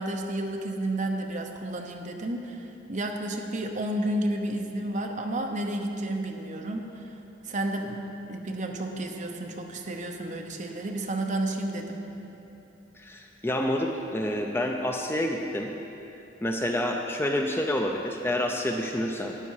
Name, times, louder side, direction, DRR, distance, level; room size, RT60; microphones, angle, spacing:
voice 1, 0.0-7.1 7.4-8.0 8.3-12.0, right 1 dB, 40° right, 3 dB, 0.9 m, -31 dB
voice 2, 12.9-15.7 16.4-19.4, left 1 dB, 10° left, 2 dB, 0.5 m, -28 dB
12.5 x 9.0 x 4.8 m, 3.0 s
head